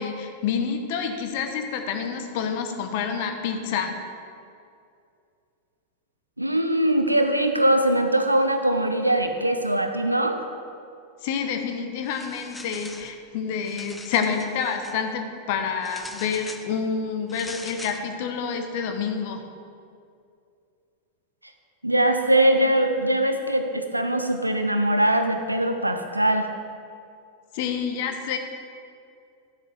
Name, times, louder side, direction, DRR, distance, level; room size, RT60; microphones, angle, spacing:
voice 1, 0.0-3.9 11.2-19.4 27.5-28.4, left 6 dB, 50° left, 5 dB, 1.0 m, -28 dB
voice 2, 6.4-10.4 21.8-26.5, right 1 dB, 85° right, 6 dB, 0.7 m, -22 dB
sound 1, 12.0-13.2 13.5-15.0 15.8-16.7 17.3-18.0, left 2 dB, 10° left, 0.6 m, -42 dB
11.0 x 7.7 x 3.6 m, 2.4 s
figure-of-eight pair, 90°, 0 cm